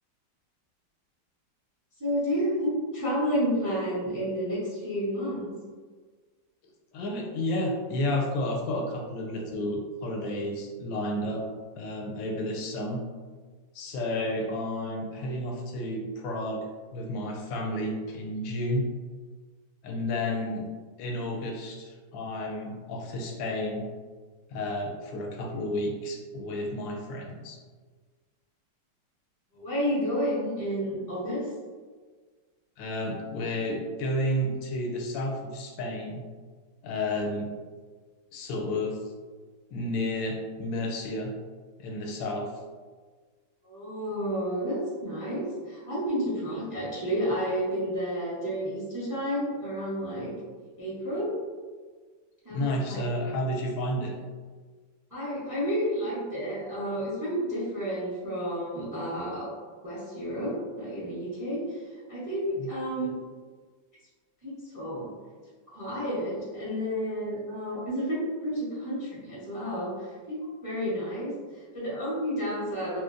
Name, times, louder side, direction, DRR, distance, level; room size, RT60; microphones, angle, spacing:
voice 1, 2.0-5.5 29.5-31.5 43.6-50.3 50.8-51.4 52.4-53.0 55.1-59.5 59.8-63.2 64.4-65.1 65.7-73.0, equal, 25° right, -8 dB, 0.4 m, -31 dB
voice 2, 6.9-11.5 11.8-13.1 13.7-18.9 19.8-20.7 21.0-23.9 24.5-27.6 32.8-36.3 36.8-37.6 38.3-39.0 39.7-41.3 41.8-42.6 52.5-54.2 62.6-62.7, left 1 dB, 85° left, 1 dB, 1.3 m, -31 dB
3.0 x 2.8 x 2.4 m, 1.5 s
omnidirectional pair, 2.0 m